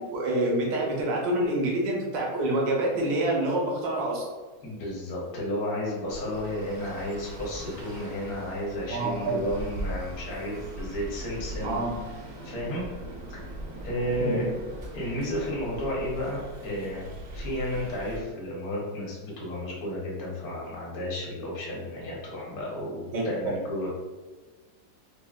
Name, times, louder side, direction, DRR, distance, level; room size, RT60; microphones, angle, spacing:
voice 1, 0.0-4.2 8.9-9.4 11.6-11.9 14.2-14.4 23.1-23.5, right 1 dB, 85° right, -2 dB, 1.4 m, -27 dB
voice 2, 4.6-11.8 12.4-12.9 13.3-13.4 13.8-14.5 14.9-23.9, left 1 dB, 60° left, -4 dB, 1.2 m, -32 dB
Traffic noise roadway noise, 6.1-18.2, right 1 dB, 70° right, 0.8 m, -40 dB
3.8 x 2.0 x 2.3 m, 1.3 s
omnidirectional pair, 1.9 m